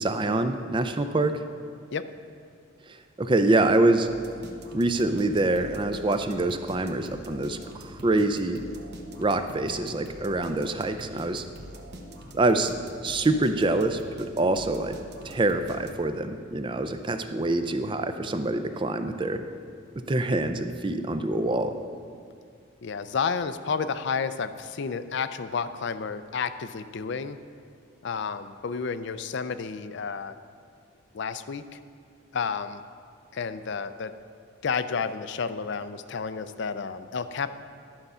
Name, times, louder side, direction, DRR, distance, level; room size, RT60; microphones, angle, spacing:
voice 1, 0.0-1.4 2.9-4.1 4.7-8.6 9.2-11.5 12.3-12.7 13.0-15.0 15.2-19.4 20.0-21.7, right 2 dB, 25° right, 9 dB, 0.4 m, -25 dB
sound 1, 4.1-16.3, equal, 50° right, 0.9 m, -44 dB
voice 2, 22.8-27.4 28.0-30.3 31.1-31.8 32.3-32.8 33.3-34.1 34.6-37.6, left 5 dB, 55° left, 12 dB, 0.4 m, -31 dB
11.5 x 6.6 x 5.5 m, 2.3 s
head